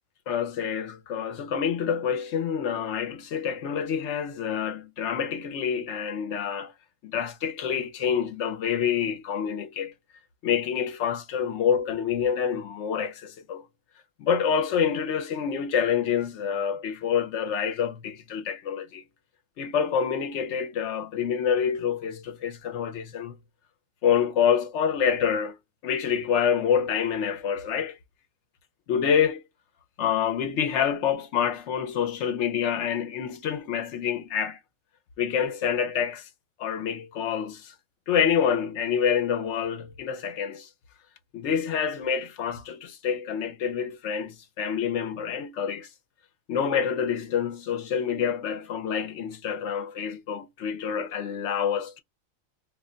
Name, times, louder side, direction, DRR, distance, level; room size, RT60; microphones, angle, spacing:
voice 1, 0.3-6.7 7.0-9.9 10.4-13.6 14.2-19.0 19.6-23.4 24.0-25.6 25.8-28.0 28.9-29.4 30.0-34.6 35.2-36.3 36.6-37.7 38.1-40.7 41.3-45.9 46.5-52.0, left 7 dB, 65° left, 0.8 m, -27 dB
2.5 x 2.1 x 3.6 m
omnidirectional pair, 1.4 m